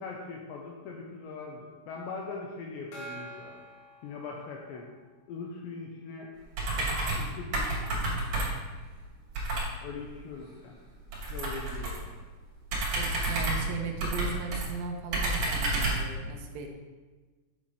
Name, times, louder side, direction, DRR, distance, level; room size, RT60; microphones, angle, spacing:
voice 1, 0.0-3.5 4.0-4.9 5.3-6.3 6.8-7.7 9.8-10.7 11.3-12.2, left 4 dB, 85° left, -1 dB, 2.5 m, -41 dB
Gong, 2.9-4.9, right 2 dB, 65° left, 3.0 m, -46 dB
sound 1, 6.5-7.3 7.5-8.7 9.3-9.7 11.1-12.1 12.7-14.7 15.1-16.1, right 2 dB, 45° right, 3.4 m, -30 dB
voice 2, 12.9-16.7, right 5 dB, 80° right, 2 dB, 2.6 m, -37 dB
8.9 x 8.3 x 3.2 m, 1.3 s
omnidirectional pair, 6.0 m